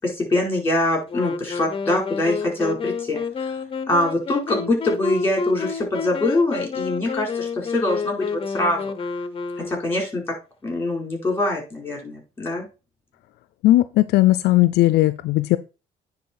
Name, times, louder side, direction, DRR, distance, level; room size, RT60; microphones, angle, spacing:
voice 1, 0.0-3.5 3.9-8.9 9.6-10.2 10.6-12.7, left 2 dB, 15° left, 0 dB, 5.1 m, -24 dB
Wind instrument woodwind instrument, 1.1-10.1, left 5 dB, 30° left, 0.9 m, -29 dB
voice 2, 13.6-15.6, left 16 dB, 80° left, 14 dB, 0.5 m, -17 dB
9.7 x 4.0 x 4.7 m, 0.30 s
cardioid pair, 110°, 17 cm